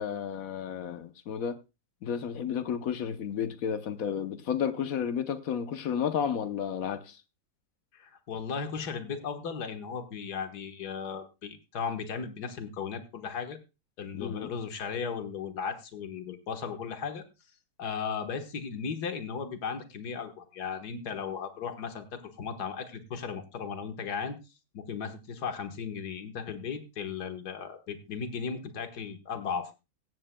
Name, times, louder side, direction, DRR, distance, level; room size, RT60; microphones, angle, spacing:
voice 1, 0.0-1.6 2.0-7.2 14.1-14.5, left 8 dB, 60° left, 1.3 m, -32 dB
voice 2, 7.9-13.6 14.0-17.2 17.8-24.4 24.7-29.7, left 6 dB, 80° left, 1.9 m, -36 dB
16.0 x 14.0 x 2.3 m
omnidirectional pair, 1.7 m